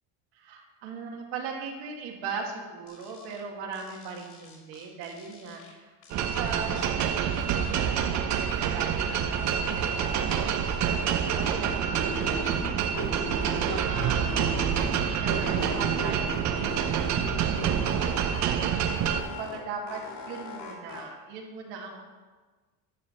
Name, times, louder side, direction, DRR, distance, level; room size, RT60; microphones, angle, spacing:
voice 1, 0.3-18.7 19.2-22.0, right 4 dB, 70° right, 1 dB, 2.0 m, -40 dB
sound 1, 2.9-3.4 3.7-5.7 6.0-8.0 8.3-10.3 10.6-12.7 12.9-15.0 15.3-17.3 17.6-19.6 19.9-21.0, left 1 dB, 55° left, 2.8 m, -39 dB
sound 2, 6.1-19.2, right 8 dB, 45° right, 0.7 m, -27 dB
12.0 x 4.8 x 5.5 m, 1.3 s
cardioid pair, 135°, 41 cm